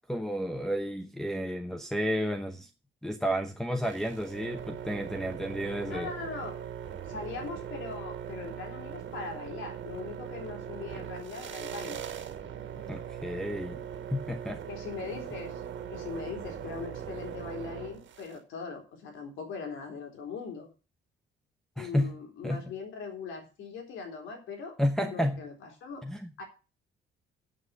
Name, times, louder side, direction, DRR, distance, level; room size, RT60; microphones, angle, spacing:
voice 1, 0.1-2.7 3.0-6.1 12.9-13.8 14.1-14.6 21.8-22.2 22.4-22.6 24.8-25.4 26.0-26.2, equal, ahead, 0.9 m, -31 dB
sound 1, 3.8-18.4, right 8 dB, 70° right, 2.0 m, -40 dB
voice 2, 5.8-6.6 7.1-12.0 14.7-15.5 15.9-20.7 21.8-24.7 25.0-26.0 26.4-26.5, left 5 dB, 80° left, 3.8 m, -40 dB
7.9 x 7.5 x 8.3 m
cardioid pair, 90°, 20 cm